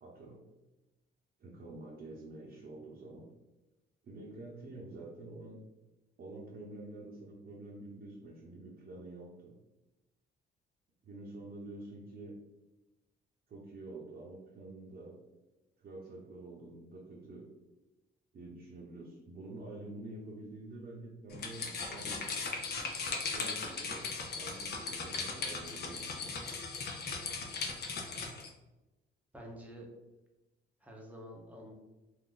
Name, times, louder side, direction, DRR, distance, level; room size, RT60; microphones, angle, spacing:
voice 1, 0.0-0.4 1.4-3.3 4.0-5.6 6.2-9.6 11.0-12.4 13.5-15.1 15.8-17.4 18.3-22.4 23.3-24.1 24.4-26.4, right 2 dB, 50° right, -5 dB, 0.8 m, -47 dB
sound 1, 21.3-28.5, left 4 dB, 55° left, 0.6 m, -38 dB
voice 2, 29.3-29.9 30.8-31.7, equal, 5° right, 0 dB, 0.7 m, -48 dB
2.5 x 2.4 x 3.7 m, 1.0 s
cardioid pair, 90°, 20 cm